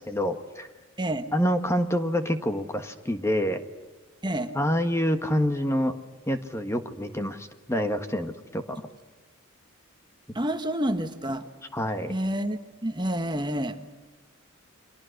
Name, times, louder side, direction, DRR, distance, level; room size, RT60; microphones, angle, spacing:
voice 1, 0.1-0.7 1.3-3.6 4.5-5.9 6.3-8.8 11.7-12.1, equal, 10° left, 7 dB, 1.5 m, -27 dB
voice 2, 1.0-1.3 4.2-4.5 10.3-11.4 12.1-13.8, right 1 dB, 20° right, 7 dB, 1.4 m, -28 dB
30.0 x 25.0 x 6.6 m, 1.2 s
head